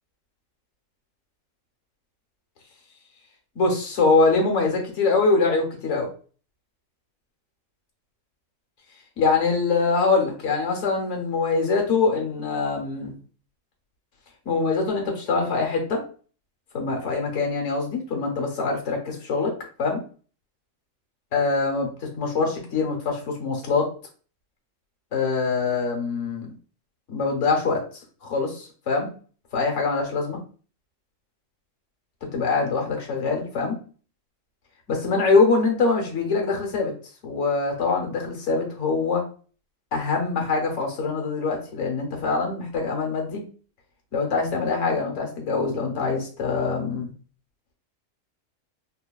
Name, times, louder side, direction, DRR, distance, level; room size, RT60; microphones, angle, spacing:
voice 1, 3.5-6.1 9.2-13.1 14.5-16.0 16.7-19.5 19.8-20.0 21.3-23.9 25.1-26.5 27.1-27.8 28.2-29.1 29.5-30.4 32.3-33.8 34.9-36.9 37.2-39.2 39.9-43.4 44.1-47.1, left 4 dB, 70° left, 1 dB, 1.2 m, -24 dB
3.7 x 2.2 x 2.3 m, 0.40 s
omnidirectional pair, 1.3 m